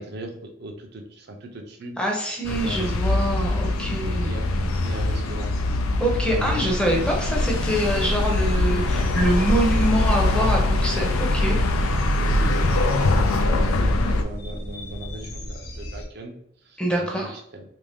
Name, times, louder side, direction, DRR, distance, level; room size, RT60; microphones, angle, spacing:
voice 1, 0.0-2.0 2.6-2.9 3.5-4.5 4.8-5.5 6.2-6.7 9.5-9.9 11.8-17.6, right 1 dB, 50° right, 3 dB, 0.6 m, -39 dB
voice 2, 2.0-4.3 6.0-11.6 16.8-17.3, right 1 dB, 5° left, -1 dB, 0.6 m, -25 dB
sound 1, 2.4-14.2, left 2 dB, 90° left, 0.4 m, -23 dB
sound 2, 6.9-16.1, equal, 50° left, 0.7 m, -34 dB
3.0 x 2.6 x 3.5 m, 0.71 s
head